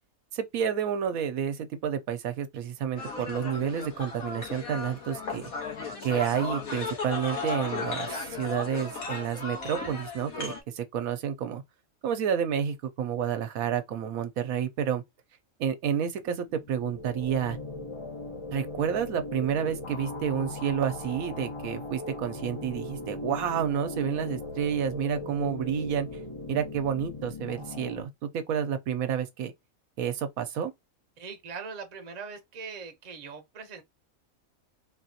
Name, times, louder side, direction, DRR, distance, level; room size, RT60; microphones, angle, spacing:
voice 1, 0.3-5.5 6.0-11.6 12.0-15.0 15.6-17.6 18.5-26.1 26.5-29.5 30.0-30.7, right 8 dB, 85° right, 1.1 m, -30 dB
sound 1, 3.0-10.6, left 4 dB, 80° left, 1.6 m, -35 dB
sound 2, 16.4-28.0, left 2 dB, 35° left, 0.5 m, -38 dB
voice 2, 31.2-33.8, right 5 dB, 35° right, 0.7 m, -41 dB
4.0 x 2.3 x 2.7 m
omnidirectional pair, 1.5 m